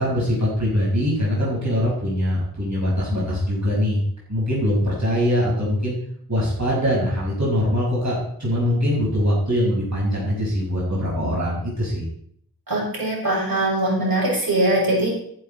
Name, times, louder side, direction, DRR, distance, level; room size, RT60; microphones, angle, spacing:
voice 1, 0.0-4.0 4.3-5.9 6.3-12.1, equal, 45° right, -5 dB, 6.1 m, -22 dB
voice 2, 12.7-15.1, right 1 dB, 70° right, -4 dB, 7.2 m, -21 dB
14.0 x 11.5 x 4.5 m, 0.66 s
wide cardioid pair, 60°, 37 cm